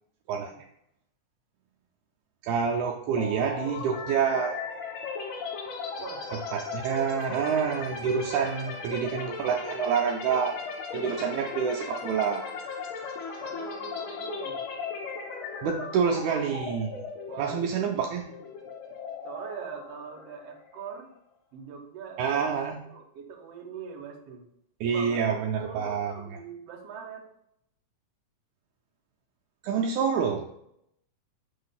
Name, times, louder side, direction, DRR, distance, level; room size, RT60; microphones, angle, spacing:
voice 1, 0.3-0.6 6.0-6.3 11.0-11.4 13.4-14.6 17.3-17.8 19.2-21.1 21.5-24.4 24.9-25.2 25.6-27.3, right 6 dB, 65° right, 2 dB, 1.9 m, -42 dB
voice 2, 2.4-4.6 6.3-10.6 10.9-12.5 15.6-17.0 17.4-18.3 22.2-22.8 24.8-26.1 29.6-30.5, right 6 dB, 80° right, 1 dB, 1.9 m, -27 dB
sound 1, 3.2-20.9, left 5 dB, 75° left, 1.2 m, -37 dB
5.9 x 3.2 x 5.7 m, 0.75 s
omnidirectional pair, 3.6 m